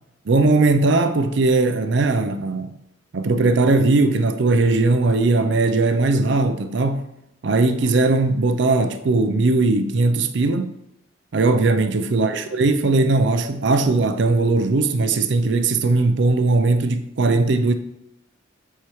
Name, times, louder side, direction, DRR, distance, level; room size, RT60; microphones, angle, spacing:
voice 1, 0.3-2.7 3.1-7.1 7.4-10.7 11.3-17.7, right 3 dB, 65° right, 0.5 m, -19 dB
8.1 x 4.5 x 3.1 m
head